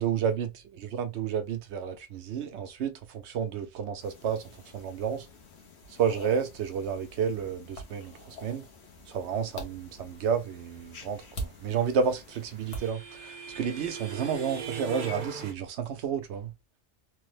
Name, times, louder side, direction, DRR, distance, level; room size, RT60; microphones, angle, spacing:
voice 1, 0.0-5.3 5.9-8.7 9.1-16.5, right 7 dB, 80° right, 0.9 m, -31 dB
sound 1, 4.0-12.9, equal, 75° left, 1.1 m, -45 dB
sound 2, 11.7-15.5, right 5 dB, 50° right, 0.8 m, -40 dB
3.3 x 2.1 x 3.2 m
omnidirectional pair, 1.1 m